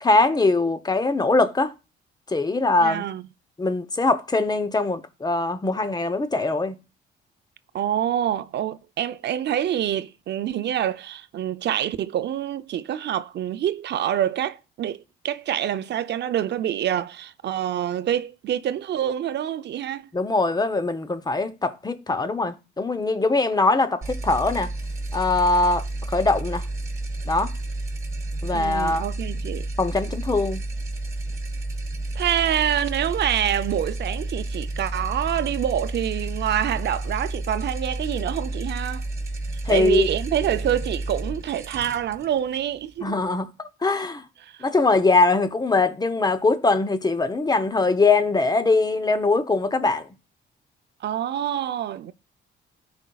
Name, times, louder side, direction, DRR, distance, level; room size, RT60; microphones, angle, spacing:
voice 1, 0.0-1.7 2.3-3.1 3.6-6.8 20.1-24.7 25.1-25.8 26.1-26.6 27.3-27.5 28.4-29.1 29.8-30.7 39.7-40.1 43.0-44.2 44.6-50.1, left 3 dB, 20° left, 0.7 m, -22 dB
voice 2, 2.8-3.2 7.7-20.1 28.5-29.7 32.2-39.0 39.7-43.2 44.4-44.7 51.0-52.1, right 10 dB, 60° right, 0.5 m, -26 dB
sound 1, 24.0-43.3, right 2 dB, 15° right, 3.8 m, -31 dB
14.0 x 5.2 x 2.3 m
cardioid pair, 90°, 20 cm